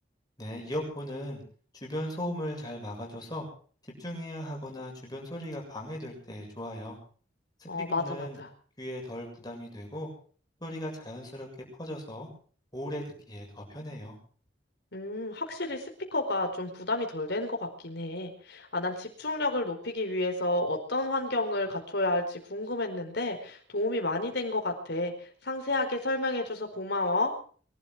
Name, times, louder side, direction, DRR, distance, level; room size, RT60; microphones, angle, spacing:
voice 1, 0.4-1.4 1.8-3.5 4.0-7.0 7.6-8.4 8.8-10.1 10.6-11.5 11.8-12.3 12.7-14.2, equal, 20° left, -1 dB, 7.3 m, -37 dB
voice 2, 7.7-8.5 14.9-15.9 16.1-25.1 25.4-27.3, left 2 dB, 60° left, 3 dB, 4.6 m, -31 dB
23.5 x 12.5 x 4.8 m, 0.44 s
head